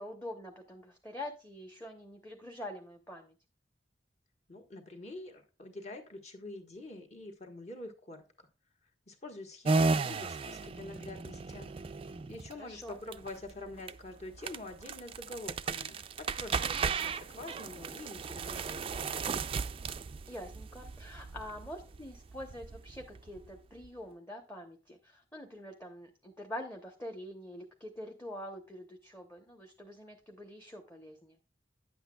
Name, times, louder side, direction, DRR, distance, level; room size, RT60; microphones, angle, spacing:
voice 1, 0.0-3.4 12.6-13.0 16.6-16.8 20.3-31.4, left 1 dB, 15° left, 2 dB, 0.9 m, -45 dB
voice 2, 4.5-8.5 9.1-11.7 12.3-19.2, left 2 dB, 40° left, 4 dB, 1.4 m, -46 dB
sound 1, 9.6-23.9, right 4 dB, 30° right, 0.3 m, -35 dB
9.6 x 7.9 x 2.3 m, 0.33 s
head